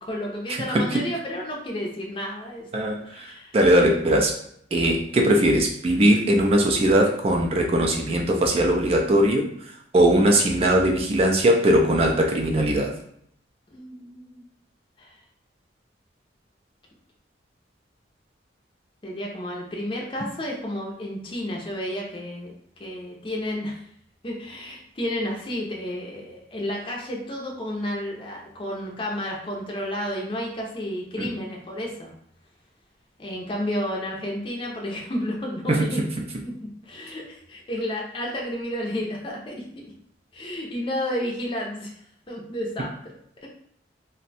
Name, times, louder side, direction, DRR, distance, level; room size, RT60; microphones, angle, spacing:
voice 1, 0.0-3.6 4.0-4.2 13.7-14.4 15.0-15.1 19.0-22.5 22.8-23.8 24.2-32.1 33.2-36.5 36.8-39.8 40.3-41.9 42.3-42.9 43.4-43.5, left 1 dB, 30° left, -2 dB, 0.5 m, -31 dB
voice 2, 0.7-1.0 2.7-3.3 3.5-4.3 4.7-9.5 9.9-12.9 31.2-31.3 35.7-35.8, right 1 dB, 30° right, 1 dB, 0.4 m, -20 dB
2.5 x 2.2 x 4.0 m, 0.68 s
head